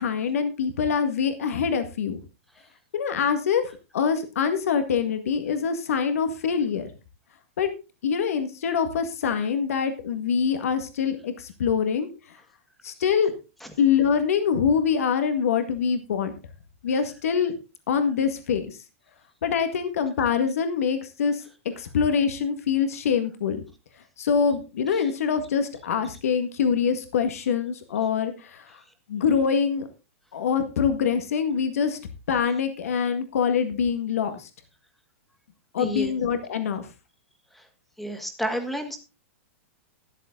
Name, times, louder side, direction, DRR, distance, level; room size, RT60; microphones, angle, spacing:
voice 1, 0.0-2.2 2.9-3.6 3.9-6.9 7.6-7.7 8.0-12.4 12.8-13.3 13.8-16.3 16.8-17.6 17.9-18.8 19.4-21.4 21.8-23.6 24.2-28.8 29.1-29.9 30.3-32.0 32.3-34.5 35.7-36.9, left 6 dB, 85° left, 9 dB, 1.8 m, -24 dB
voice 2, 35.8-36.1 38.0-39.0, right 1 dB, ahead, 6 dB, 1.7 m, -30 dB
13.0 x 11.0 x 3.8 m, 0.30 s
supercardioid pair, 170°, 8 cm